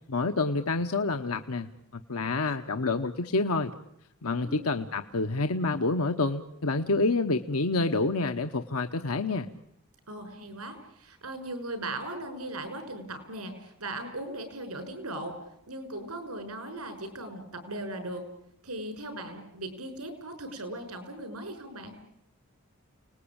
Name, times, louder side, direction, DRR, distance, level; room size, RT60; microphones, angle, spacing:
voice 1, 0.1-1.7 1.9-3.7 4.2-9.5, left 3 dB, 75° left, 7 dB, 1.0 m, -28 dB
voice 2, 10.1-15.3 15.7-18.2 18.6-21.9, right 1 dB, 85° right, 8 dB, 6.0 m, -38 dB
29.5 x 19.5 x 8.8 m, 0.77 s
head